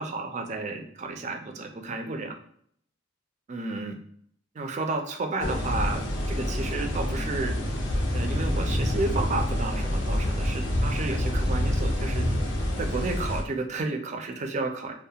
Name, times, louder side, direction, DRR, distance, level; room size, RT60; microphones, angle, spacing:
voice 1, 0.0-2.3 3.5-3.9 4.5-6.0 6.3-7.5 8.1-12.3 12.8-14.9, right 3 dB, 35° right, 4 dB, 0.3 m, -32 dB
sound 1, 5.4-13.4, left 1 dB, 70° left, 0.5 m, -27 dB
2.3 x 2.1 x 2.7 m, 0.63 s
head